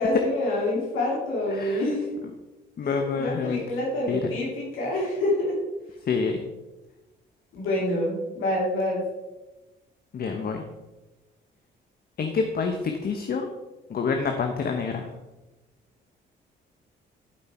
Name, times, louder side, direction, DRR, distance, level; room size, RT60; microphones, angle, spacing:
voice 1, 0.0-2.1 2.8-5.6 7.5-9.0, left 1 dB, 90° left, -4 dB, 2.8 m, -27 dB
voice 2, 1.5-1.8 2.8-3.6 4.1-4.3 6.1-6.4 10.1-10.6 12.2-13.5 13.9-15.1, left 5 dB, 50° left, 5 dB, 1.0 m, -27 dB
11.5 x 5.5 x 4.4 m, 1.1 s
cardioid pair, 90°, 20 cm